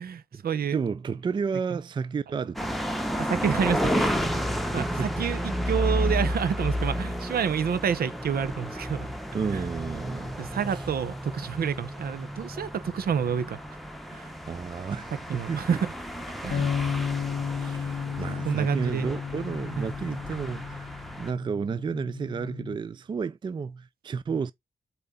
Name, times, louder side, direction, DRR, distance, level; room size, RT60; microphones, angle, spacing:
voice 1, 0.0-0.8 1.7-1.8 3.2-4.2 4.7-9.1 9.5-9.7 10.4-13.6 14.1-14.3 15.3-15.9 16.4-16.7 18.4-19.1 19.8-19.9, right 7 dB, 80° right, 0.8 m, -29 dB
voice 2, 0.7-2.7 4.8-5.2 9.3-10.3 10.7-10.8 14.5-15.8 17.5-24.5, right 5 dB, 30° right, 0.3 m, -32 dB
sound 1, 2.6-21.3, equal, ahead, 0.9 m, -32 dB
sound 2, 16.5-22.8, left 6 dB, 70° left, 0.7 m, -33 dB
7.8 x 4.3 x 3.7 m
wide cardioid pair, 175°, 15 cm